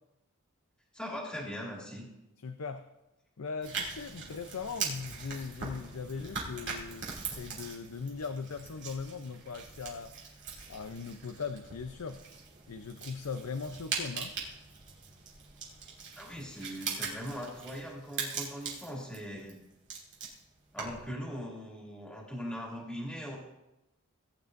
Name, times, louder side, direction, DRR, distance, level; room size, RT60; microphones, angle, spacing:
voice 1, 0.9-2.1 16.2-19.6 20.7-23.4, equal, 5° left, -3 dB, 2.4 m, -40 dB
voice 2, 2.4-2.9 3.4-10.1 10.7-12.2 12.7-14.4, left 5 dB, 80° left, 7 dB, 0.6 m, -39 dB
sound 1, 3.6-21.1, right 5 dB, 50° right, 2.6 m, -41 dB
19.0 x 9.6 x 2.6 m, 0.93 s
head